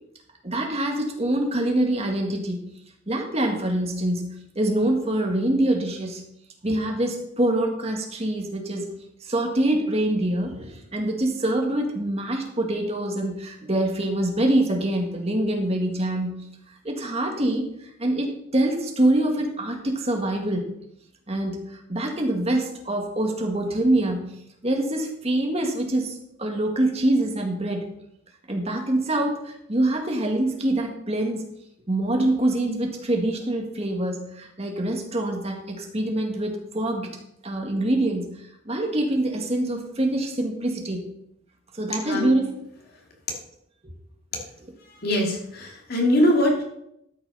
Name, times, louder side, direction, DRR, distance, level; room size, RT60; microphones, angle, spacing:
voice 1, 0.4-2.7 3.1-6.2 6.6-16.4 16.8-17.7 18.0-20.7 21.3-24.4 24.6-27.9 28.5-31.4 31.9-37.2 37.4-38.4 38.7-41.1 41.7-42.5, right 1 dB, 30° right, 2 dB, 1.8 m, -25 dB
voice 2, 42.0-42.3 45.0-46.6, equal, 50° left, 0 dB, 2.5 m, -22 dB
13.0 x 6.2 x 5.5 m, 0.78 s
head